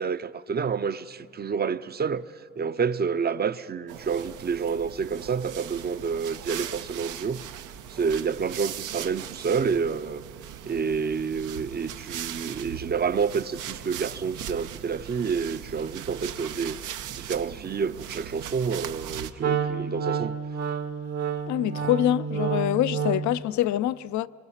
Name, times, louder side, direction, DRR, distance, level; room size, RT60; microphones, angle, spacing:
voice 1, 0.0-2.3 2.6-7.5 7.9-10.2 10.7-20.4, right 6 dB, 35° right, 0.6 m, -29 dB
sound 1, 3.9-19.3, right 10 dB, 85° right, 0.9 m, -39 dB
Wind instrument woodwind instrument, 19.4-23.4, right 7 dB, 60° right, 1.2 m, -29 dB
voice 2, 21.5-24.3, left 12 dB, 70° left, 0.5 m, -25 dB
24.5 x 23.5 x 5.7 m
cardioid pair, 90°, 30 cm